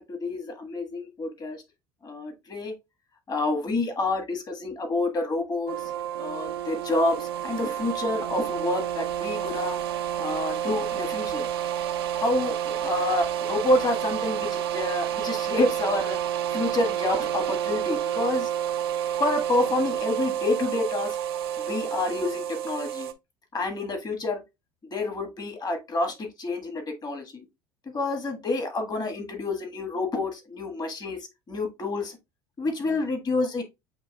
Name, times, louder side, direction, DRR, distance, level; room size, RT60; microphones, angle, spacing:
voice 1, 0.0-1.6 2.0-2.7 3.3-5.7 6.2-9.8 10.2-11.5 12.2-16.2 16.5-18.5 19.2-21.2 21.6-23.1 23.5-24.4 24.9-27.5 27.9-31.2 31.5-32.2 32.6-33.6, left 2 dB, 30° left, 1.5 m, -28 dB
sound 1, 5.7-23.1, right 10 dB, 80° right, 0.5 m, -29 dB
8.1 x 2.8 x 2.2 m
hypercardioid pair, 70°, 13 cm